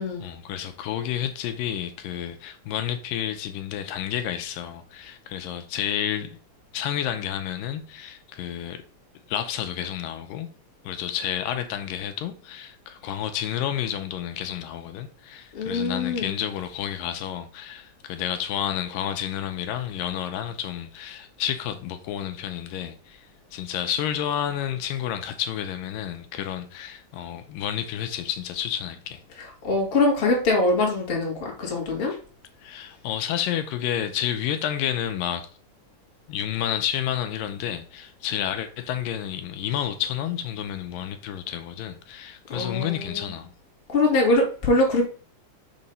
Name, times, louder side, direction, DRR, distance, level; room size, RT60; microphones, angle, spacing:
voice 1, 0.0-6.4 6.7-8.8 9.3-10.5 10.8-23.3 23.5-29.2 32.6-35.5 36.3-43.5, left 10 dB, 80° left, 2.3 m, -30 dB
voice 2, 15.5-16.3 29.4-32.2 42.5-43.3 43.9-45.1, left 2 dB, 30° left, 1.0 m, -23 dB
6.3 x 2.9 x 5.3 m
omnidirectional pair, 4.1 m